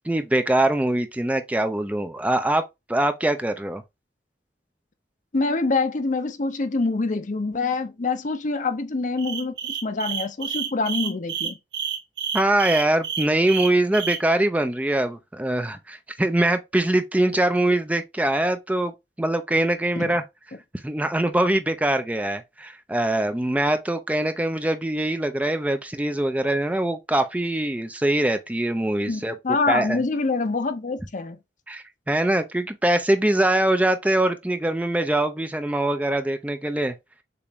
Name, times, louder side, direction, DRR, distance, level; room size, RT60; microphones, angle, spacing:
voice 1, 0.0-3.8 12.3-18.9 19.2-20.2 20.8-29.3 29.7-30.0 31.7-36.9, right 1 dB, 10° right, 0.4 m, -23 dB
voice 2, 5.3-11.6 20.0-20.1 29.1-31.4, left 3 dB, 45° left, 0.7 m, -25 dB
sound 1, 9.2-14.2, right 8 dB, 75° right, 1.2 m, -29 dB
6.9 x 2.6 x 3.0 m
head